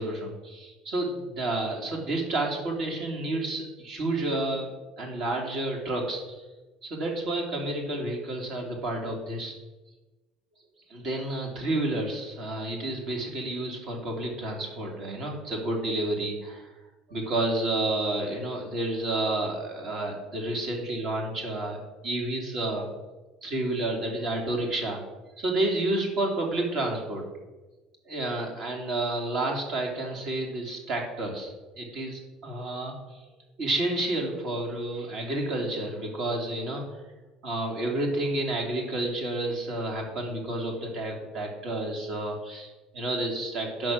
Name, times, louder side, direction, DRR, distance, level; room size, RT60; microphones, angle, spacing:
voice 1, 0.0-4.7 5.0-6.4 6.8-9.5 10.9-16.7 17.1-22.9 23.4-25.0 25.4-27.2 28.1-32.9 33.6-37.0 37.4-43.9, right 2 dB, 50° right, 1 dB, 2.8 m, -30 dB
9.5 x 6.5 x 6.2 m, 1.2 s
cardioid pair, 140°, 0 cm